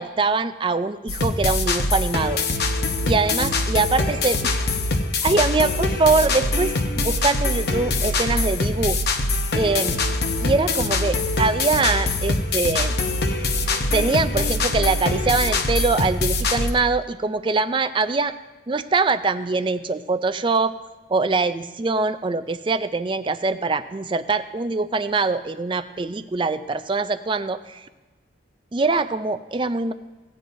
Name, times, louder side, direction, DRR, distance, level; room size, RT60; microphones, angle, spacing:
voice 1, 0.0-2.4 3.1-4.6 5.2-9.0 9.6-10.0 10.4-12.9 13.9-18.3 18.7-20.7 21.1-27.6 28.7-29.9, right 3 dB, 25° right, 12 dB, 0.4 m, -23 dB
sound 1, 1.1-16.7, left 2 dB, 55° left, 0.8 m, -23 dB
17.0 x 9.2 x 2.7 m, 1.2 s
head